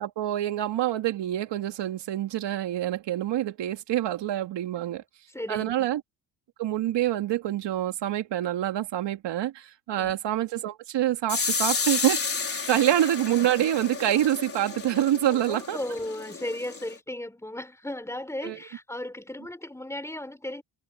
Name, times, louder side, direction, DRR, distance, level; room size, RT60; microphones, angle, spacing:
voice 1, 0.0-5.0 5.5-6.0 6.6-12.2 12.7-15.8 18.4-18.6, right 12 dB, 65° right, 2.6 m, -26 dB
voice 2, 4.8-5.9 10.0-10.2 12.7-12.8 15.3-20.6, left 1 dB, 5° left, 4.4 m, -36 dB
sound 1, 11.3-16.9, left 5 dB, 30° left, 4.4 m, -31 dB
cardioid pair, 90°, 45 cm